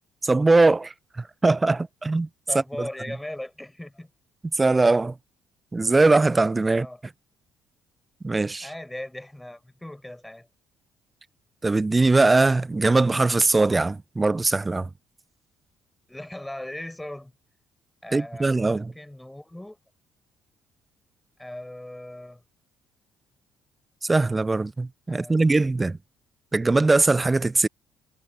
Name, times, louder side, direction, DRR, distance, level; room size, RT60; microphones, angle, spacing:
voice 1, 0.2-2.3 2.8-2.9 4.5-5.1 5.7-6.9 8.2-8.7 11.6-14.9 18.1-18.9 24.0-26.0 26.5-27.7, right 3 dB, 20° right, 0.4 m, -21 dB
voice 2, 2.5-4.1 6.7-7.0 8.6-10.5 16.1-17.3 18.0-19.8 21.4-22.4 25.1-25.4, left 1 dB, 10° left, 5.0 m, -38 dB
hypercardioid pair, 50°, 0 cm